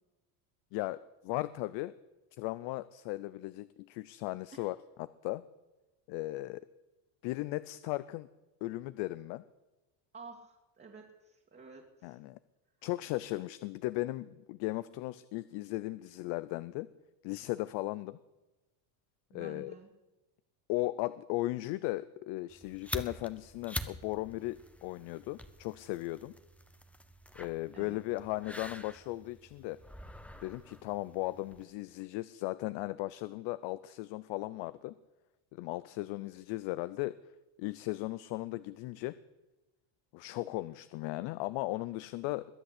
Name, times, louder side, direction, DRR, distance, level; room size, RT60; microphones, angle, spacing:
voice 1, 0.7-1.9 2.4-5.4 6.1-6.6 7.2-8.3 8.6-9.4 12.0-12.4 12.8-16.9 17.2-18.2 19.3-19.7 20.7-26.3 27.3-29.8 30.4-34.9 35.5-37.2 37.6-39.1 40.1-42.4, left 19 dB, 60° left, 16 dB, 0.7 m, -37 dB
voice 2, 10.1-12.2 19.3-19.9 27.7-28.0, right 4 dB, 20° right, -1 dB, 2.2 m, -51 dB
sound 1, 22.5-31.7, equal, 5° left, 0.9 m, -46 dB
21.5 x 7.9 x 8.3 m, 1.1 s
supercardioid pair, 125°, 48 cm